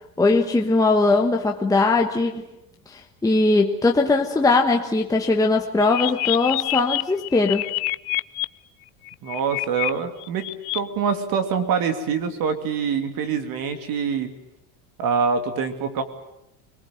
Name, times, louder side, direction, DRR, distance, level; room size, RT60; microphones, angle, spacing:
voice 1, 0.2-2.4 2.9-7.7, left 3 dB, 5° left, 1 dB, 1.3 m, -20 dB
sound 1, 5.8-8.4 9.1-9.9 10.2-10.8, left 23 dB, 75° left, 0.9 m, -27 dB
voice 2, 9.2-14.3 15.0-16.0, right 6 dB, 50° right, 8 dB, 2.8 m, -25 dB
26.0 x 19.5 x 9.3 m, 0.86 s
supercardioid pair, 140°, 46 cm